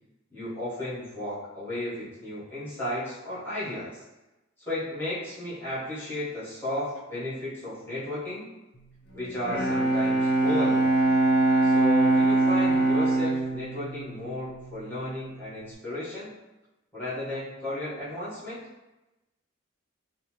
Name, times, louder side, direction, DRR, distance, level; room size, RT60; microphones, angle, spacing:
voice 1, 0.3-4.0 4.6-8.4 9.1-10.9 11.6-16.3 16.9-18.6, left 1 dB, 10° left, -11 dB, 1.1 m, -34 dB
Bowed string instrument, 9.2-15.0, right 2 dB, 50° left, 0.5 m, -23 dB
2.8 x 2.1 x 2.9 m, 1.0 s
head